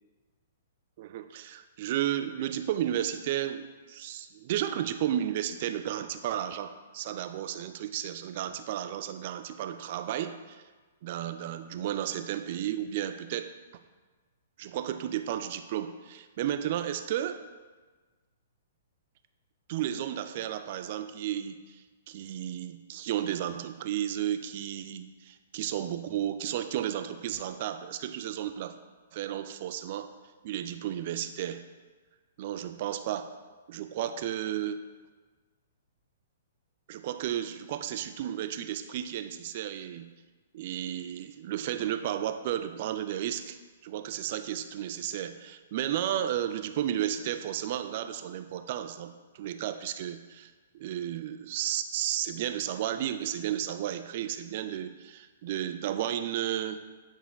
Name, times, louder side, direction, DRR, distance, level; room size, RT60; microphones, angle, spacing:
voice 1, 1.0-10.6 11.0-13.5 14.6-17.4 19.7-28.8 29.1-30.1 30.4-31.6 32.4-33.4 33.7-34.8 36.9-40.1 40.5-43.6 43.8-56.8, right 11 dB, 45° right, 9 dB, 0.3 m, -33 dB
8.8 x 4.9 x 2.2 m, 1.3 s
figure-of-eight pair, 115°, 0 cm